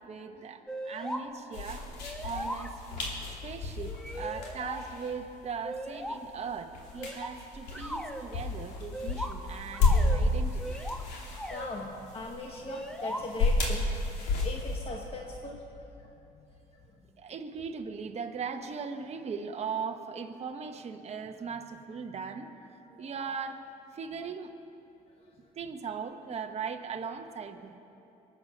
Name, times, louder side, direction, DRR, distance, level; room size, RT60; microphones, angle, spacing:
voice 1, 0.0-1.8 2.2-2.8 3.4-10.6 17.2-22.5 23.0-23.6 23.9-24.5 25.6-27.8, right 6 dB, 40° right, 5 dB, 1.2 m, -38 dB
sound 1, 0.7-1.2 1.6-1.7 2.0-3.0 3.8-4.9 5.6-6.2 7.0-8.2 8.9-10.2 10.6-11.0 11.4-11.7 12.6-13.2, equal, 5° left, 1.1 m, -38 dB
sound 2, 1.5-14.8, left 3 dB, 80° left, 3.1 m, -32 dB
voice 2, 11.0-16.1 16.3-16.4 16.7-17.0 21.4-21.5 22.8-23.2 25.1-25.3, left 2 dB, 35° left, 0 dB, 1.5 m, -42 dB
23.5 x 8.9 x 6.7 m, 2.9 s
cardioid pair, 110°, 17 cm